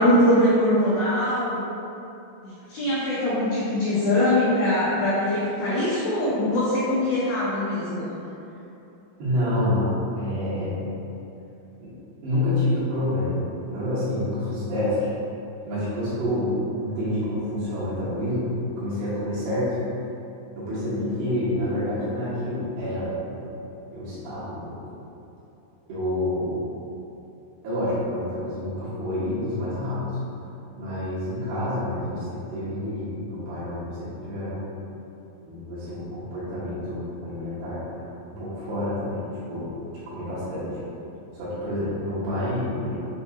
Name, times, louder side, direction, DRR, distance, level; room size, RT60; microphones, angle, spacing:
voice 1, 0.0-1.6 2.4-8.1, left 1 dB, 85° left, -10 dB, 2.1 m, -22 dB
voice 2, 9.2-10.8 11.8-11.9 12.2-13.4 13.7-15.1 15.6-19.8 20.6-23.4 23.9-24.8 25.9-26.6 27.6-30.0 30.7-34.6 35.5-37.8 38.3-39.2 39.5-39.7 40.1-40.7 41.3-43.1, left 1 dB, 70° right, -12 dB, 3.1 m, -28 dB
7.4 x 2.6 x 2.4 m, 2.8 s
omnidirectional pair, 5.3 m